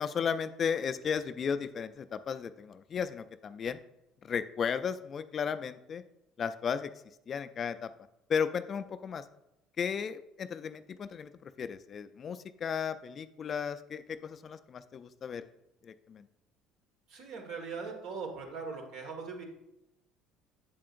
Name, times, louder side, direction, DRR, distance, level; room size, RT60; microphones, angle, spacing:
voice 1, 0.0-3.8 4.2-6.0 6.4-6.9 7.3-7.9 8.3-9.3 9.8-15.4 15.8-16.3, left 7 dB, 40° left, 12 dB, 0.3 m, -34 dB
voice 2, 17.1-19.4, right 4 dB, 70° right, 3 dB, 1.6 m, -40 dB
7.7 x 7.4 x 2.5 m, 0.88 s
cardioid pair, 120°, 0 cm